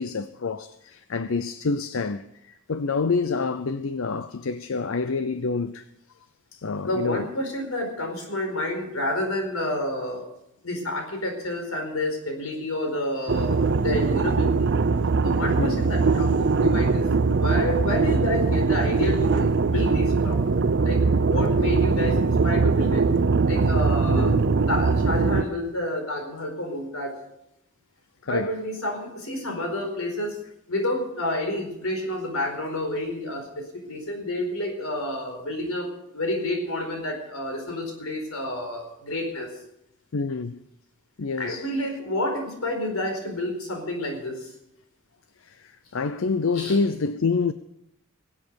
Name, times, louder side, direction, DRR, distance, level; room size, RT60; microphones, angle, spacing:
voice 1, 0.0-5.8 6.5-7.3 15.6-15.9 24.1-24.4 28.2-28.5 40.1-40.6 41.2-41.7 45.4-47.5, left 4 dB, 65° left, 0.6 m, -27 dB
voice 2, 6.8-10.2 10.6-14.7 15.2-20.4 20.8-23.0 23.4-24.3 24.7-27.1 28.2-30.4 30.7-39.5 41.4-44.5 46.5-46.8, left 1 dB, 85° left, 4.7 m, -29 dB
sound 1, 13.3-25.4, right 4 dB, 55° right, 0.6 m, -21 dB
21.0 x 8.3 x 6.9 m
head